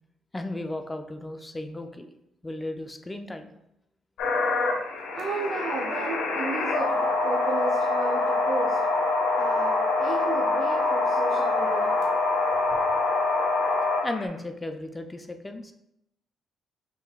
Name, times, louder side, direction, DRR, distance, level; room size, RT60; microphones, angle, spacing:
voice 1, 0.3-2.1 2.4-3.5 14.0-15.7, left 2 dB, 15° left, 6 dB, 0.4 m, -35 dB
sound 1, 4.2-14.3, left 3 dB, 85° left, 1.0 m, -25 dB
voice 2, 5.1-8.9 9.3-12.0, right 3 dB, 70° right, -2 dB, 0.6 m, -33 dB
5.7 x 3.2 x 2.4 m, 0.83 s
cardioid pair, 90°, 0 cm